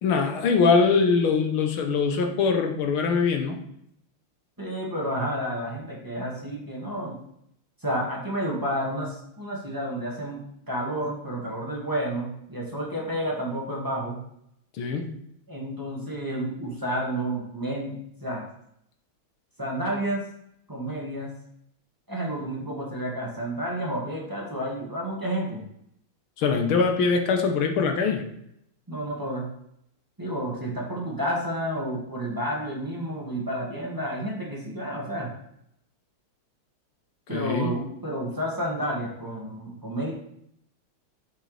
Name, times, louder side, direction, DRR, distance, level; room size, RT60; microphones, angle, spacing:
voice 1, 0.0-3.6 14.8-15.1 26.4-28.2 37.3-37.7, left 5 dB, 75° left, 4 dB, 1.8 m, -22 dB
voice 2, 4.6-7.2 7.8-10.4 10.7-14.2 15.5-18.5 19.6-20.2 20.7-21.3 22.1-25.6 28.9-29.5 30.2-35.3 37.3-40.1, right 1 dB, 10° right, -3 dB, 1.6 m, -30 dB
8.0 x 6.7 x 3.3 m, 0.75 s
omnidirectional pair, 2.4 m